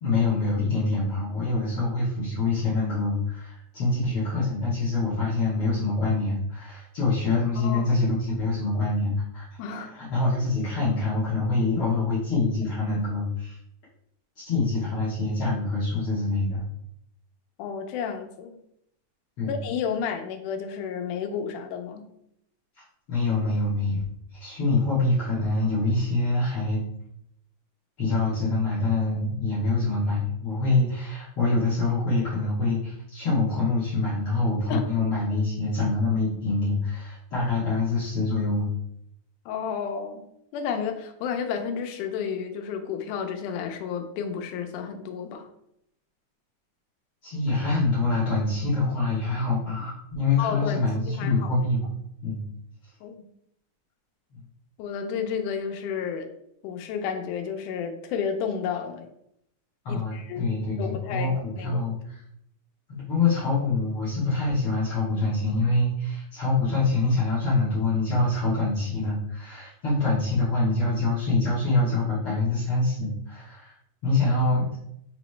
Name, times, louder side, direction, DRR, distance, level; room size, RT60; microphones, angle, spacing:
voice 1, 0.0-9.5 9.7-13.6 14.4-16.6 19.4-19.5 22.8-24.1 24.3-26.8 28.0-38.7 47.2-51.9 52.2-52.4 59.8-62.2 62.9-73.7 74.0-74.8, left 3 dB, 60° left, -9 dB, 1.6 m, -25 dB
voice 2, 7.6-8.0 9.6-9.9 17.6-18.6 19.5-22.1 34.7-34.9 39.5-40.3 40.5-45.5 50.4-50.8 51.2-51.5 53.0-53.2 54.8-56.3 56.6-59.1 59.9-61.9, left 7 dB, 85° left, 5 dB, 2.1 m, -31 dB
5.4 x 3.0 x 3.1 m, 0.75 s
omnidirectional pair, 3.6 m